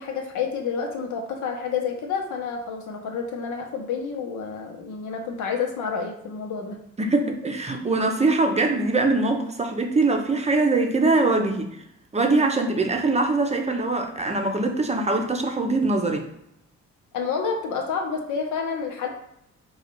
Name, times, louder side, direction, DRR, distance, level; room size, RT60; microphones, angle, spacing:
voice 1, 0.0-6.8 17.1-19.1, left 6 dB, 80° left, 0.9 m, -29 dB
voice 2, 7.0-11.8 12.1-16.3, right 3 dB, 20° right, 0.6 m, -22 dB
3.8 x 2.4 x 4.4 m
cardioid pair, 90°, 30 cm